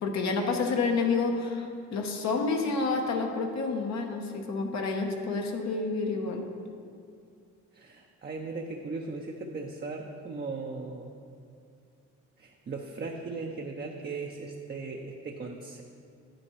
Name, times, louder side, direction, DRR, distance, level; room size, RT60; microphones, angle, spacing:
voice 1, 0.0-6.5, left 4 dB, 65° left, 2 dB, 1.0 m, -29 dB
voice 2, 7.7-11.1 12.4-15.8, right 3 dB, 35° right, 1 dB, 0.6 m, -38 dB
9.2 x 8.1 x 3.1 m, 2.4 s
cardioid pair, 90°, 30 cm